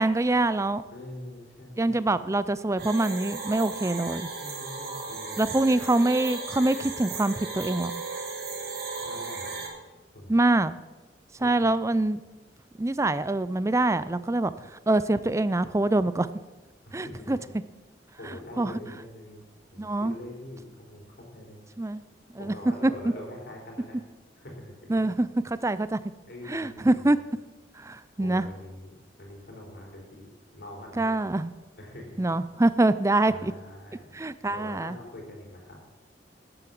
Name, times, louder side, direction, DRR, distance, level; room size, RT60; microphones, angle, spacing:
voice 1, 0.0-0.8 1.8-4.3 5.4-8.0 10.3-10.7 11.4-12.2 12.8-16.3 16.9-17.4 18.2-18.8 19.8-20.2 21.8-22.0 22.3-22.5 22.8-22.9 24.9-26.0 26.5-27.2 27.8-28.5 31.0-31.5 32.2-33.5 34.1-35.0, right 2 dB, 15° right, 15 dB, 0.4 m, -25 dB
voice 2, 0.9-2.2 4.4-5.6 8.6-8.7 9.0-9.8 10.1-10.4 11.4-11.5 16.9-17.3 18.2-19.4 19.7-21.6 22.4-24.0 24.4-24.9 26.3-27.1 28.2-28.9 29.2-31.2 31.8-32.2 33.3-34.1 34.5-35.8, left 1 dB, 65° left, 0 dB, 4.1 m, -43 dB
sound 1, 2.8-9.7, right 4 dB, 60° right, 2.5 m, -36 dB
12.5 x 7.9 x 7.5 m, 1.1 s
head